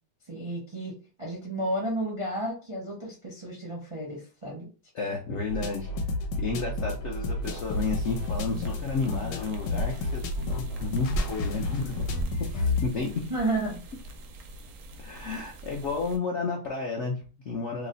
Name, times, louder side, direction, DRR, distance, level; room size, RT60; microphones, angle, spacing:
voice 1, 0.3-4.7 13.3-13.8, right 1 dB, 40° right, -3 dB, 0.4 m, -32 dB
voice 2, 4.9-5.9 6.4-12.1 12.5-13.1 15.0-17.9, left 4 dB, 70° left, 0 dB, 0.6 m, -32 dB
sound 1, 5.5-12.9, left 2 dB, 90° left, 1.3 m, -31 dB
sound 2, 7.4-16.2, equal, 70° right, 0.8 m, -38 dB
3.1 x 2.0 x 3.8 m, 0.35 s
omnidirectional pair, 1.9 m